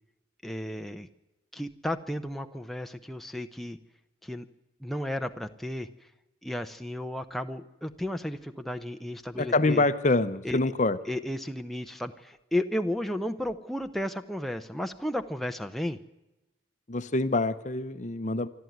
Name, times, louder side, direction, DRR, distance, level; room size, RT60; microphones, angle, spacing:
voice 1, 0.4-1.1 1.5-3.8 4.2-4.5 4.8-6.1 6.4-9.8 10.4-10.6 11.1-16.0, left 1 dB, ahead, 6 dB, 0.7 m, -33 dB
voice 2, 9.4-11.0 16.9-18.5, left 2 dB, 40° left, 13 dB, 0.8 m, -25 dB
26.0 x 12.5 x 9.3 m, 0.96 s
head